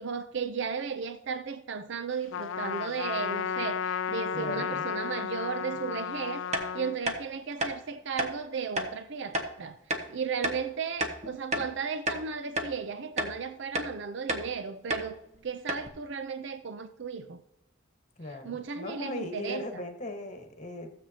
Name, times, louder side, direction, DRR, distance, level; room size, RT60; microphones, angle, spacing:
voice 1, 0.0-17.4 18.4-19.6, right 5 dB, 65° right, 0.5 m, -35 dB
Trumpet, 2.3-7.0, left 7 dB, 75° left, 0.4 m, -33 dB
voice 2, 4.3-4.8 18.2-20.9, left 1 dB, 40° left, 1.4 m, -38 dB
sound 1, 6.5-6.7 7.1-7.2 7.6-7.7 8.2-8.3 8.8-8.9 9.3-9.5 9.9-10.1 10.4-10.6 11.0-11.7 12.1-12.2 12.6-12.7 13.2-13.4 13.7-13.9 14.3-14.5 14.9-15.1 15.3-15.4 15.7-15.9, right 1 dB, 35° right, 1.1 m, -30 dB
15.5 x 7.7 x 2.8 m
head